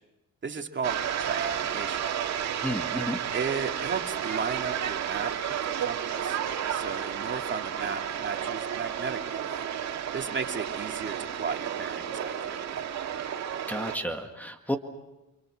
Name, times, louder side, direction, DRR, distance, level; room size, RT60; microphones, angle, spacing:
voice 1, 0.4-2.0 3.3-6.4 6.7-9.5 10.1-12.8, right 5 dB, 40° right, 4 dB, 2.4 m, -35 dB
sound 1, 0.8-14.0, right 9 dB, 60° right, 2.3 m, -32 dB
voice 2, 2.6-3.2 13.7-14.8, equal, 5° left, 5 dB, 1.9 m, -31 dB
28.5 x 26.5 x 6.4 m, 1.0 s
cardioid pair, 90°, 30 cm